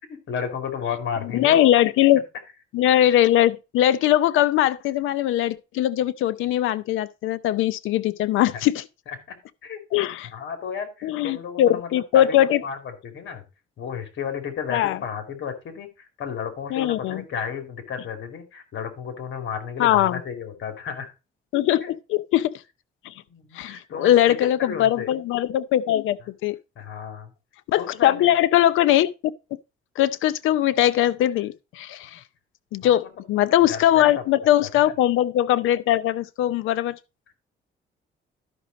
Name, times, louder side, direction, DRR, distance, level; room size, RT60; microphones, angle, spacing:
voice 1, 0.3-1.7 9.1-9.8 10.3-13.4 13.8-21.1 21.8-21.9 23.3-25.1 26.8-27.3 27.8-28.4 32.0-32.1 32.8-33.1 33.7-34.5 34.8-34.9, left 7 dB, 70° left, 2.7 m, -33 dB
voice 2, 1.3-2.2 2.7-8.8 9.9-10.3 11.0-12.6 14.7-15.0 16.7-17.2 19.8-20.2 21.5-22.6 23.0-23.1 23.5-26.6 27.7-29.1 30.0-32.2 32.7-37.0, left 12 dB, 90° left, 0.7 m, -21 dB
12.0 x 6.0 x 4.0 m
cardioid pair, 90°, 20 cm